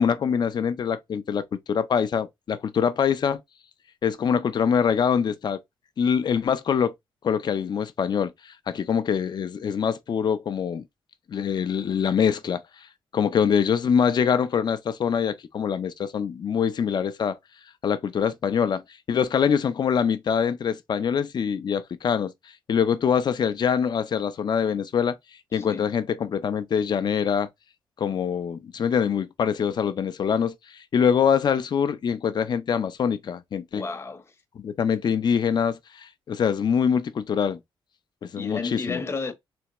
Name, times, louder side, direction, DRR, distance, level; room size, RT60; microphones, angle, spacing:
voice 1, 0.0-3.4 4.0-5.6 6.0-6.9 7.2-8.3 8.7-10.8 11.3-12.6 13.1-17.4 17.8-18.8 19.1-22.3 22.7-25.2 25.5-27.5 28.0-30.5 30.9-33.8 34.6-37.6 38.2-39.0, left 7 dB, 50° left, 0.6 m, -24 dB
voice 2, 25.5-25.8 33.7-34.3 38.3-39.3, left 4 dB, 30° left, 0.9 m, -32 dB
3.5 x 3.4 x 3.0 m
cardioid pair, 105°, 9 cm